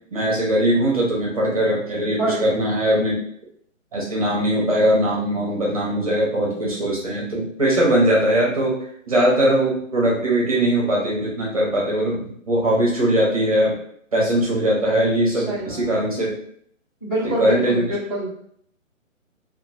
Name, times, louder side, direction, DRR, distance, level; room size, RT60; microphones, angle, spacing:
voice 1, 0.1-3.2 3.9-8.8 9.1-13.7 14.1-16.3 17.4-17.9, right 1 dB, 30° right, -4 dB, 0.6 m, -20 dB
voice 2, 2.2-2.6 15.3-16.0 17.0-18.4, equal, 20° left, -10 dB, 0.6 m, -26 dB
2.9 x 2.4 x 2.7 m, 0.66 s
figure-of-eight pair, 140°, 40 cm